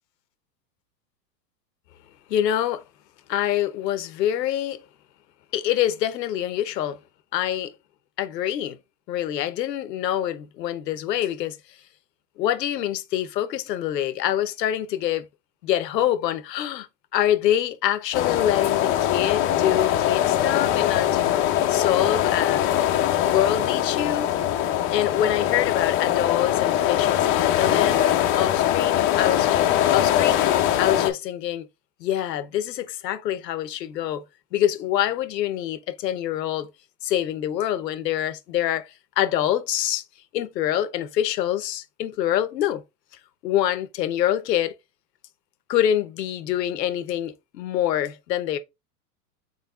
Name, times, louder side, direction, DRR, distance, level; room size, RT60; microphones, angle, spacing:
voice 1, 2.3-2.8 3.3-4.8 5.5-7.0 7.3-7.7 8.2-8.8 9.1-11.8 12.4-15.2 15.6-16.9 17.1-21.3 21.7-22.6 23.2-24.3 24.9-28.0 28.3-30.4 30.8-31.7 32.0-34.2 34.5-36.7 37.0-40.0 40.3-42.8 43.4-44.7 45.7-48.6, left 11 dB, 85° left, 0.9 m, -25 dB
sound 1, 18.1-31.1, left 11 dB, 25° left, 0.5 m, -22 dB
4.0 x 3.7 x 2.4 m
hypercardioid pair, 130°, 48 cm